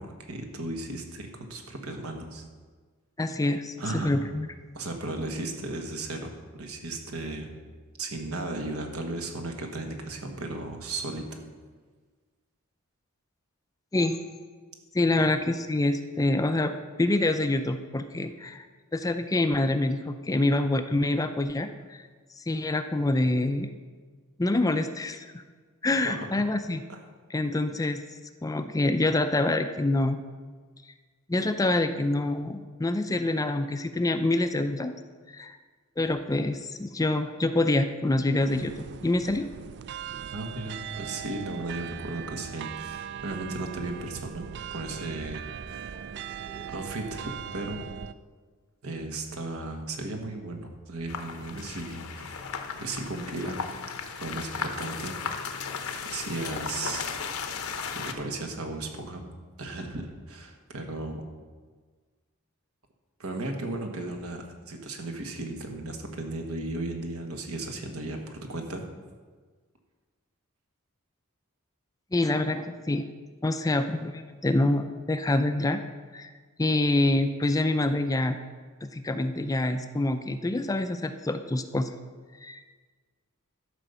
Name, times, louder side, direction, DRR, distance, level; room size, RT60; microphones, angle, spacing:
voice 1, 0.0-2.5 3.8-4.3 4.7-6.3 6.6-7.5 8.0-11.2 15.2-15.3 26.0-26.4 26.9-27.0 40.3-46.0 46.7-47.8 48.8-52.5 52.8-53.6 54.2-55.5 56.0-57.0 57.9-59.2 59.6-61.2 63.2-68.8, right 2 dB, 75° right, 4 dB, 1.4 m, -35 dB
voice 2, 3.2-4.5 13.9-14.3 14.9-16.7 17.0-18.7 18.9-22.0 22.4-23.7 24.4-25.4 25.8-26.8 27.3-28.0 28.4-30.2 31.3-34.9 35.3-35.6 36.0-39.5 45.9-46.0 46.5-46.6 72.1-73.1 73.4-75.8 76.1-76.3 76.6-78.4 78.8-81.9 82.4-82.6, left 2 dB, 15° left, 9 dB, 0.4 m, -26 dB
sound 1, 38.4-48.1, right 8 dB, 50° right, 0.3 m, -39 dB
sound 2, 51.1-58.1, left 6 dB, 75° left, 0.9 m, -35 dB
12.5 x 5.1 x 6.8 m, 1.5 s
head